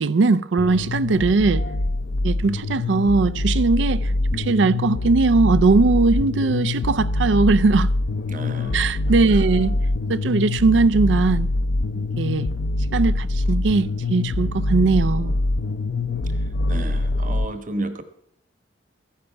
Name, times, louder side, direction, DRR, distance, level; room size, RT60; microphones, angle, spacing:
voice 1, 0.0-1.6 2.2-7.9 8.7-9.8 10.1-11.5 12.0-12.5 12.9-15.3, right 3 dB, 75° right, 0.5 m, -20 dB
sound 1, 0.6-17.5, left 2 dB, 75° left, 0.7 m, -24 dB
voice 2, 8.3-8.8 9.3-9.4 16.7-18.0, right 1 dB, 45° right, 1.2 m, -32 dB
14.0 x 10.5 x 5.8 m
head